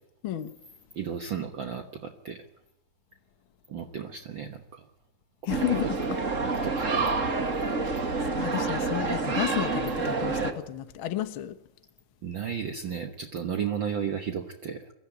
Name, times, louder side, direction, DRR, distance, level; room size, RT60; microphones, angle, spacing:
voice 1, 0.2-0.6 5.4-6.0 8.3-11.6, left 13 dB, 75° left, 1.2 m, -32 dB
voice 2, 0.9-2.4 3.7-4.8 5.4-5.9 6.6-7.1 12.2-14.9, right 7 dB, 65° right, 1.2 m, -34 dB
sound 1, 5.5-10.5, right 3 dB, 35° right, 1.2 m, -28 dB
23.0 x 14.0 x 9.3 m
omnidirectional pair, 3.9 m